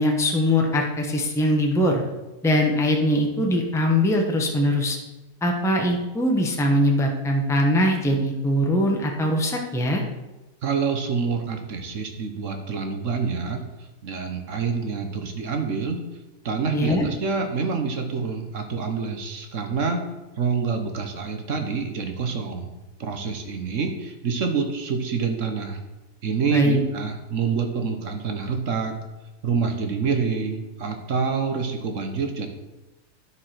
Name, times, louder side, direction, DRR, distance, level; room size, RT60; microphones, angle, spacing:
voice 1, 0.0-2.0 2.4-5.0 5.4-10.0 16.7-17.1 26.5-26.8, left 1 dB, ahead, 1 dB, 0.9 m, -21 dB
voice 2, 10.6-13.6 14.0-16.0 16.4-20.0 20.4-22.7 23.0-25.8 26.2-29.0 29.4-32.5, right 5 dB, 55° right, 5 dB, 1.3 m, -27 dB
10.0 x 4.8 x 5.8 m, 1.1 s
omnidirectional pair, 1.7 m